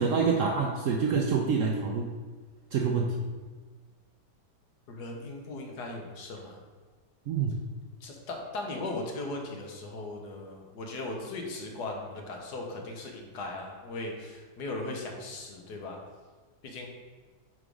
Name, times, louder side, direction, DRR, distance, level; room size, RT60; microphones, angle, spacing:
voice 1, 0.0-2.1 2.7-3.2 7.3-7.5, right 5 dB, 70° right, 0 dB, 0.7 m, -26 dB
voice 2, 4.9-6.6 8.0-16.0 16.6-16.9, left 2 dB, 75° left, 1 dB, 1.4 m, -38 dB
4.8 x 4.0 x 5.1 m, 1.4 s
omnidirectional pair, 1.8 m